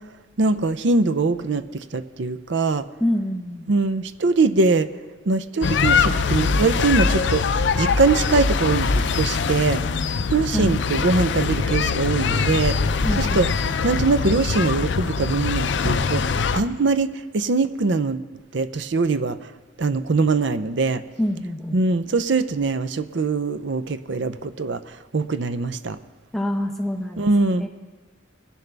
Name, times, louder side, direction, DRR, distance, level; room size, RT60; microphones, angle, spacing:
voice 1, 0.4-2.8 3.7-4.9 5.3-9.9 10.3-12.8 13.2-13.5 13.8-18.2 18.5-19.5 19.8-21.0 21.7-26.0 27.2-27.7, right 3 dB, 65° right, 12 dB, 0.6 m, -22 dB
voice 2, 3.0-3.6 10.5-10.7 13.0-13.5 21.2-21.8 26.3-27.3 27.6-27.7, left 1 dB, ahead, 2 dB, 1.0 m, -26 dB
sound 1, 5.6-16.6, left 5 dB, 65° left, 0.5 m, -22 dB
20.5 x 10.5 x 3.4 m, 1.4 s
head